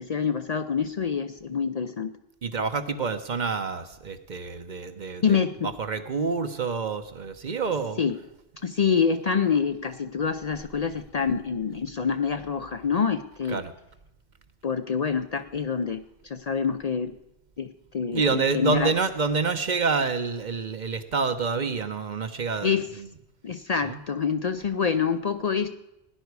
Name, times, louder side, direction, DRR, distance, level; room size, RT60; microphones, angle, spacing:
voice 1, 0.0-2.1 5.2-5.7 8.0-8.1 8.6-13.6 14.6-17.2 17.6-17.7 17.9-18.9 22.6-22.9 23.4-25.7, left 6 dB, 50° left, 9 dB, 0.6 m, -26 dB
voice 2, 2.4-8.0 13.5-13.7 18.1-23.1 23.8-24.0, right 4 dB, 50° right, 9 dB, 0.9 m, -28 dB
17.0 x 10.5 x 4.7 m, 0.89 s
omnidirectional pair, 1.0 m